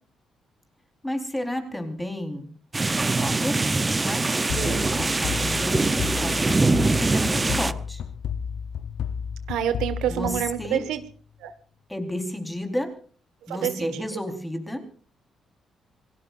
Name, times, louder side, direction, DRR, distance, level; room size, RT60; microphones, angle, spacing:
voice 1, 1.0-2.5 3.2-8.0 10.1-10.8 11.9-12.9 13.5-14.8, left 1 dB, 10° left, 5 dB, 4.0 m, -32 dB
sound 1, 2.7-7.7, right 3 dB, 20° right, 0.7 m, -23 dB
sound 2, 4.5-11.1, left 7 dB, 70° left, 0.7 m, -32 dB
voice 2, 4.6-4.9 9.5-11.0 11.4-11.5 13.5-13.7, right 10 dB, 90° right, 10 dB, 1.5 m, -27 dB
27.0 x 18.0 x 2.5 m, 0.43 s
cardioid pair, 90°, 0 cm